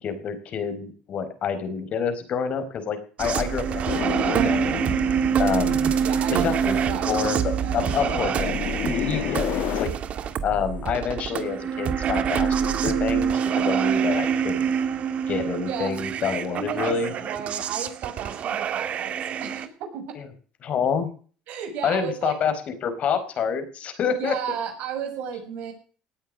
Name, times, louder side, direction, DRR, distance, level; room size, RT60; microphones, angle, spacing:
voice 1, 0.0-4.8 5.4-5.9 6.3-9.9 10.4-14.7 15.3-17.1 20.2-20.3 20.6-21.1 21.8-24.3, left 6 dB, 50° left, 10 dB, 4.5 m, -28 dB
sound 1, 3.2-19.7, right 7 dB, 50° right, 1.7 m, -26 dB
sound 2, 3.9-9.9, left 12 dB, 70° left, 1.3 m, -32 dB
voice 2, 6.0-8.0 10.1-10.3 15.7-15.9 16.5-20.2 21.5-22.3 24.2-25.7, right 8 dB, 70° right, 5 dB, 6.6 m, -34 dB
18.5 x 9.1 x 6.5 m, 0.42 s
supercardioid pair, 95°, 3 cm